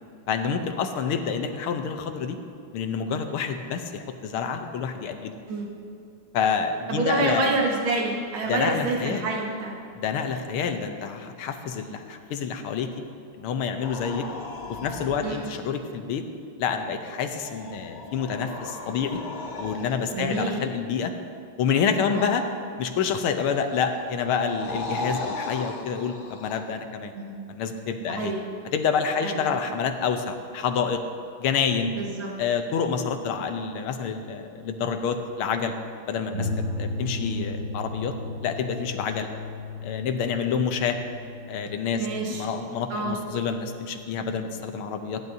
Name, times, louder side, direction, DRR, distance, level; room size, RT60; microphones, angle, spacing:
voice 1, 0.3-2.4 2.7-5.4 6.3-7.5 8.5-9.2 9.9-12.9 13.4-14.3 14.7-16.2 16.6-19.2 19.6-21.1 21.6-22.4 22.8-27.1 27.5-28.3 28.7-31.0 31.4-31.9 32.4-35.8 36.1-36.5 36.8-38.1 38.4-39.3 39.8-41.0 41.5-45.2, left 6 dB, 85° left, 6 dB, 1.7 m, -28 dB
voice 2, 6.9-9.8 15.2-15.5 20.1-20.6 22.1-22.3 27.2-27.4 28.1-28.4 29.2-29.4 31.9-32.3 42.0-42.5 42.9-43.2, right 3 dB, 70° right, -2 dB, 2.4 m, -27 dB
sound 1, 13.8-15.6 17.2-20.4 23.2-26.6, left 2 dB, 70° left, 2.2 m, -37 dB
sound 2, 36.3-43.2, left 2 dB, 85° right, 2.6 m, -35 dB
28.0 x 11.0 x 2.7 m, 2.6 s
omnidirectional pair, 2.3 m